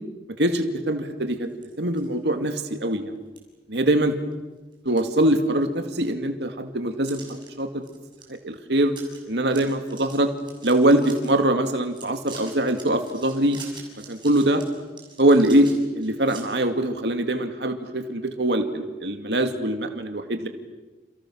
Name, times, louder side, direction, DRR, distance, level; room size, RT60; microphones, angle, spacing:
voice 1, 0.4-1.5 1.8-3.1 3.7-4.1 4.8-7.8 8.3-8.9 9.3-10.3 10.6-13.6 14.1-14.6 15.2-20.5, right 1 dB, 75° right, 6 dB, 2.3 m, -23 dB
sound 1, 1.5-2.1 2.6-2.7 3.4-3.5 3.9-4.3 4.7-5.8 6.1-6.2 7.1-7.5 7.8-8.2 8.5-8.6 8.9-9.2 9.5-11.3 11.8-16.4, right 5 dB, 25° right, 6.9 m, -45 dB
29.5 x 29.5 x 6.4 m, 1.2 s
head